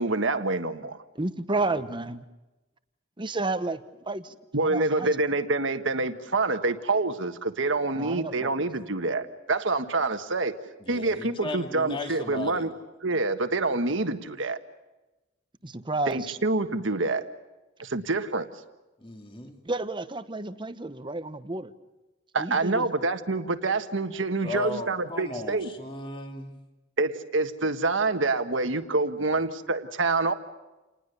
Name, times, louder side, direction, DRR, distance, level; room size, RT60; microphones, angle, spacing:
voice 1, 0.0-1.0 4.5-10.5 10.9-12.7 13.0-14.6 16.1-17.2 17.8-18.5 22.3-25.7 27.0-30.3, right 3 dB, 65° right, 1.5 m, -27 dB
voice 2, 1.2-2.2 3.2-4.4 4.6-5.2 7.9-8.5 15.6-16.4 19.6-21.7 22.4-23.1, right 2 dB, 25° right, 1.0 m, -31 dB
voice 3, 10.8-12.7 19.0-19.6 24.4-26.5, left 1 dB, 25° left, 2.5 m, -36 dB
29.0 x 20.0 x 6.9 m
head